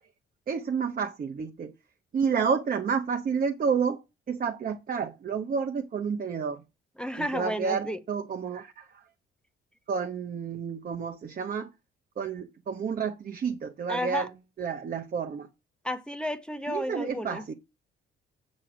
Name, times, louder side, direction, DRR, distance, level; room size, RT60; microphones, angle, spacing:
voice 1, 0.5-1.7 2.1-6.6 7.2-8.9 9.9-11.7 12.2-14.3 14.6-15.5 16.7-17.5, right 6 dB, 45° right, 1.1 m, -30 dB
voice 2, 7.0-8.0 13.9-14.3 15.8-17.4, equal, 5° left, 0.9 m, -32 dB
7.5 x 6.3 x 6.1 m
cardioid pair, 90°, 20 cm